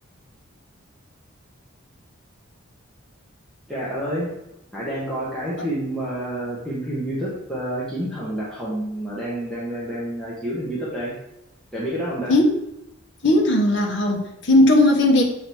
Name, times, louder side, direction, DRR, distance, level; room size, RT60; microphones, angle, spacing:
voice 1, 3.7-4.3 4.7-11.1 11.7-12.3, right 1 dB, 5° left, -9 dB, 1.5 m, -28 dB
voice 2, 13.2-15.2, left 1 dB, 55° left, 1 dB, 1.3 m, -17 dB
7.5 x 4.0 x 4.6 m, 0.88 s
head